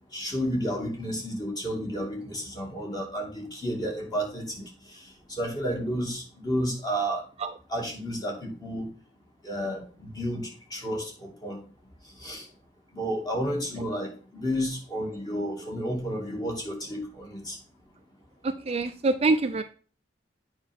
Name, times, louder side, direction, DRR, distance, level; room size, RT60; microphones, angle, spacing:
voice 1, 0.1-7.3 7.7-8.9 9.4-11.6 12.0-12.5 12.9-17.6, equal, 25° left, 0 dB, 2.4 m, -32 dB
voice 2, 18.4-19.6, right 3 dB, 35° right, 7 dB, 0.5 m, -25 dB
9.1 x 5.5 x 3.6 m, 0.39 s
head